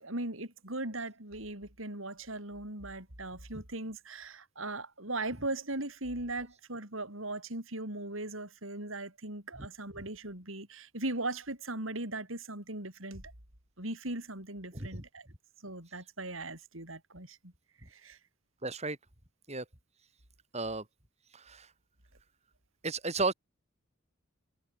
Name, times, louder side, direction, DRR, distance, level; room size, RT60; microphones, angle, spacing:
voice 1, 0.0-13.3 13.8-15.3 15.6-17.5 17.9-18.2, right 2 dB, 75° right, 7.0 m, -39 dB
voice 2, 14.7-15.0 18.6-19.0 19.5-19.6 20.5-20.9 21.3-21.7 22.8-23.3, right 3 dB, 30° right, 6.1 m, -34 dB
head